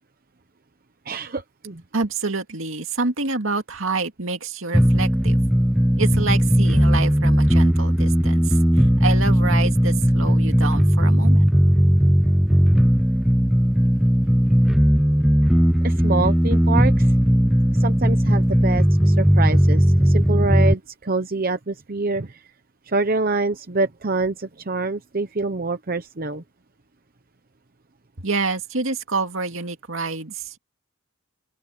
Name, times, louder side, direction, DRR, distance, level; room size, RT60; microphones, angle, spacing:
voice 1, 1.1-1.8 15.8-17.1 17.7-22.4 22.9-26.4, right 3 dB, 45° right, 0.9 m, -26 dB
voice 2, 1.9-5.4 6.0-8.6 9.0-11.4 28.2-30.6, right 3 dB, 75° right, 2.2 m, -27 dB
sound 1, 4.7-20.7, equal, ahead, 0.4 m, -17 dB
open air
head